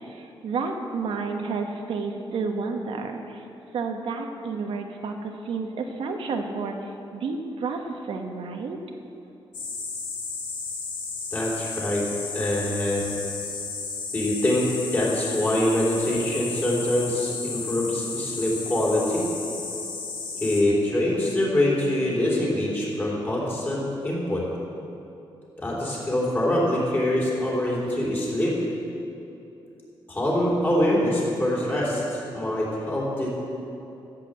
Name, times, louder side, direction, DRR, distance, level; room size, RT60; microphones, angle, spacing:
voice 1, 0.0-3.4 3.7-8.8, right 4 dB, 75° right, 4 dB, 1.2 m, -31 dB
sound 1, 9.5-20.6, left 4 dB, 60° left, 2.0 m, -33 dB
voice 2, 11.3-12.0 12.3-13.2 14.1-14.7 14.9-19.3 20.3-24.4 25.6-28.6 30.1-33.3, left 1 dB, 20° left, -5 dB, 3.3 m, -24 dB
13.5 x 8.2 x 7.7 m, 2.8 s
wide cardioid pair, 170°, 9 cm